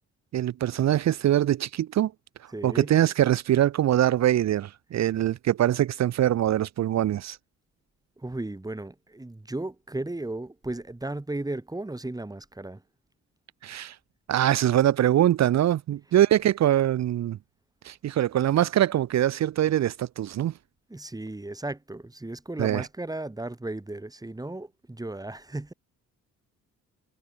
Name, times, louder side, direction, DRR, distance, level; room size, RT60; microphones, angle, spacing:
voice 1, 0.3-2.1 2.4-7.4 13.6-14.0 14.3-17.4 17.8-20.5 22.6-22.9, right 12 dB, 60° right, 1.0 m, -23 dB
voice 2, 2.5-2.9 8.2-12.8 20.9-25.7, right 2 dB, 10° right, 5.1 m, -35 dB
cardioid pair, 90°, 30 cm